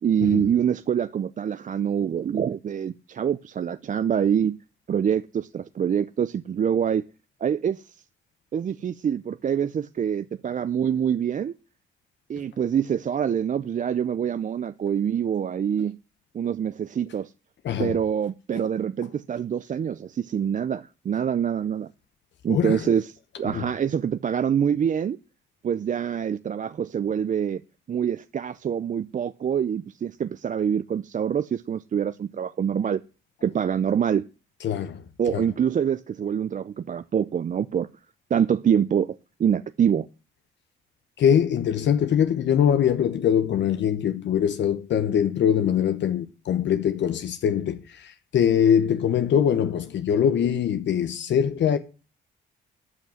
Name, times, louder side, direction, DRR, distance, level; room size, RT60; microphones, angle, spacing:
voice 1, 0.0-4.6 4.9-7.0 7.4-8.0 8.5-11.5 12.3-16.0 16.3-17.3 17.8-21.9 22.4-23.1 23.4-25.2 25.6-27.6 27.9-33.0 33.4-34.3 35.2-37.9 38.3-40.1, right 8 dB, 40° right, 0.5 m, -25 dB
voice 2, 17.6-18.0 22.5-22.9 23.4-23.6 34.6-35.0 35.3-35.5 41.2-51.8, left 9 dB, 65° left, 1.0 m, -23 dB
12.5 x 6.1 x 8.9 m
cardioid pair, 90°, 20 cm